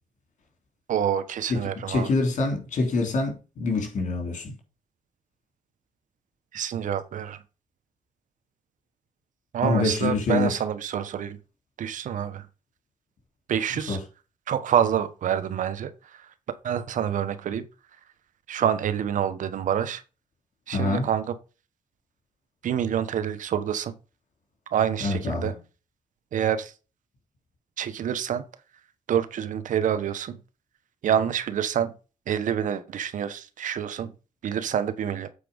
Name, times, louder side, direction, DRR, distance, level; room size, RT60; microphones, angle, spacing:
voice 1, 0.9-2.1 6.5-7.4 9.5-11.4 11.8-12.5 13.5-14.0 14.5-16.3 16.6-17.6 18.5-20.0 20.7-21.3 22.6-23.9 24.7-25.5 26.3-26.7 27.8-28.4 29.1-30.4 31.0-31.9 32.3-34.1 34.4-35.3, right 9 dB, 80° right, 1.2 m, -27 dB
voice 2, 1.9-4.5 9.6-10.6 13.9-14.0 20.7-21.1 25.0-25.6, left 3 dB, 75° left, 3.5 m, -25 dB
8.5 x 4.8 x 5.4 m
cardioid pair, 70°, 13 cm